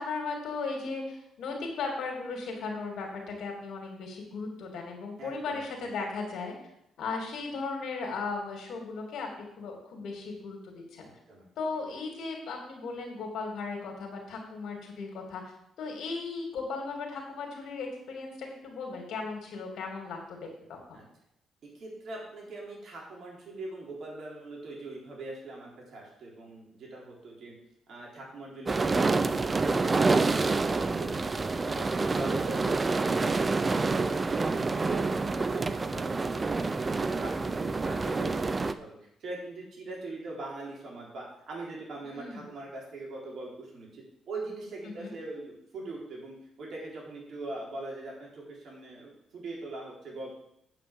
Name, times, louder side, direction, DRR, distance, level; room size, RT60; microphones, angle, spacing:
voice 1, 0.0-6.5 7.0-11.1 11.6-15.4 15.8-21.0 42.0-42.5 44.8-45.1, left 4 dB, 75° left, 2 dB, 3.1 m, -36 dB
voice 2, 5.2-5.6 11.3-11.5 20.9-21.0 21.6-27.5 27.9-31.9 32.1-50.4, right 2 dB, 60° right, -3 dB, 4.1 m, -42 dB
sound 1, 28.7-38.7, right 3 dB, 25° right, 0.6 m, -27 dB
9.0 x 5.7 x 7.4 m, 0.78 s
cardioid pair, 90°, 0 cm